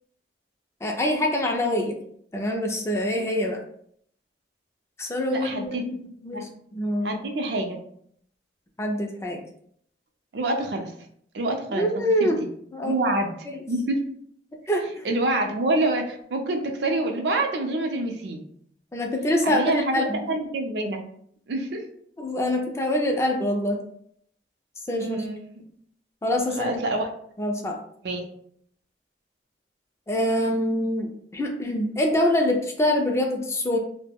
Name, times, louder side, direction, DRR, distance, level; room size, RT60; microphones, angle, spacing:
voice 1, 0.8-1.9 2.3-3.6 5.0-5.9 6.2-7.2 8.8-9.4 11.7-12.4 12.7-13.0 14.7-15.1 18.9-20.2 22.2-23.8 24.9-25.3 26.2-26.7 27.4-27.8 30.1-33.8, left 1 dB, 15° left, 2 dB, 0.3 m, -25 dB
voice 2, 5.3-6.0 6.3-6.4 7.0-7.8 10.3-10.9 11.3-11.9 12.2-12.3 12.8-13.4 13.7-14.0 15.0-18.4 19.4-21.0 21.5-21.8 25.0-25.4 26.6-27.1 28.0-28.2, right 2 dB, 75° right, 3 dB, 0.5 m, -26 dB
2.2 x 2.0 x 3.4 m, 0.65 s
head